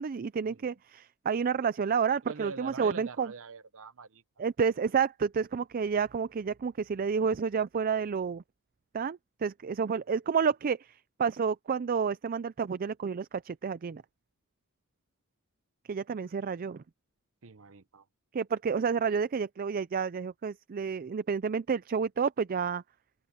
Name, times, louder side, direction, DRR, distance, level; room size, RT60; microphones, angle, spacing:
voice 1, 0.0-3.3 4.4-8.4 8.9-14.0 15.9-16.8 18.3-22.8, right 6 dB, 40° right, 0.4 m, -30 dB
voice 2, 2.2-4.2 17.4-18.0, right 4 dB, 65° right, 1.0 m, -44 dB
open air
head